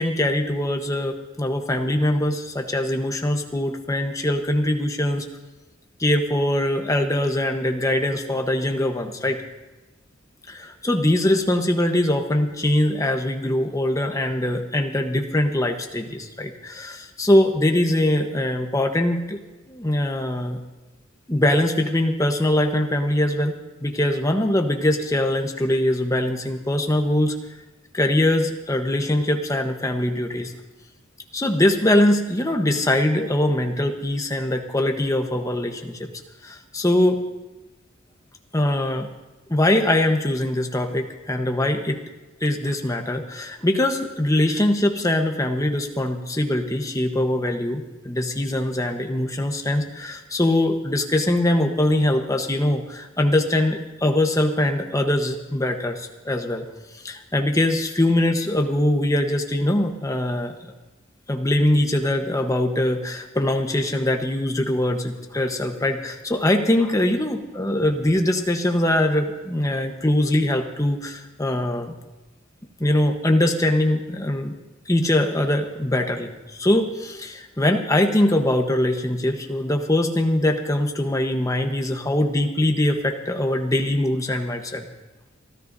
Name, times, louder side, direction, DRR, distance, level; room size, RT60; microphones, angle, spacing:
voice 1, 0.0-5.2 6.0-9.4 10.5-19.4 19.7-20.6 21.3-27.3 27.9-30.5 31.3-36.1 36.4-37.2 38.5-39.1 39.5-42.0 42.4-56.6 57.0-60.7 61.3-72.0 72.8-74.5 74.9-84.9, left 1 dB, 15° left, 4 dB, 1.0 m, -22 dB
30.0 x 12.5 x 2.7 m, 1.1 s
head